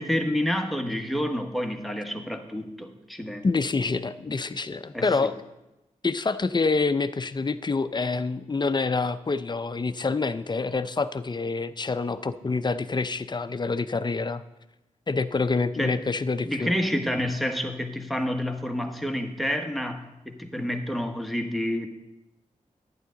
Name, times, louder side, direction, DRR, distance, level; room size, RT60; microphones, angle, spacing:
voice 1, 0.0-3.5 4.9-5.3 15.8-16.0 16.4-21.9, equal, ahead, 4 dB, 1.3 m, -29 dB
voice 2, 3.4-5.3 6.0-14.4 15.1-16.7, left 4 dB, 35° left, 12 dB, 0.5 m, -27 dB
11.0 x 9.4 x 3.8 m, 0.97 s
cardioid pair, 50°, 14 cm